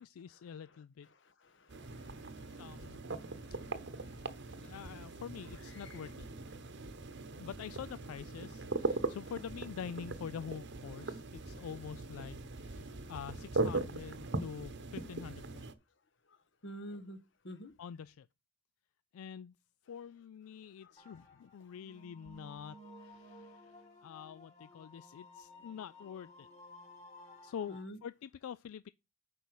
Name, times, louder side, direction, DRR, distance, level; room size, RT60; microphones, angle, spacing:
voice 1, 0.0-1.1 2.6-3.0 4.5-6.3 7.2-15.7 17.8-18.3 19.1-19.5 19.9-26.5 27.4-28.9, left 7 dB, 85° left, 0.3 m, -46 dB
voice 2, 1.2-4.8 5.7-6.1 9.0-9.2 11.6-11.7 12.9-13.1 16.3-16.4 16.6-17.7 20.8-20.9 27.7-28.0, equal, 60° left, 1.2 m, -51 dB
sound 1, 1.7-15.7, right 2 dB, 55° right, 0.9 m, -40 dB
sound 2, 21.0-27.8, left 1 dB, 30° left, 3.5 m, -55 dB
8.4 x 5.3 x 4.7 m
head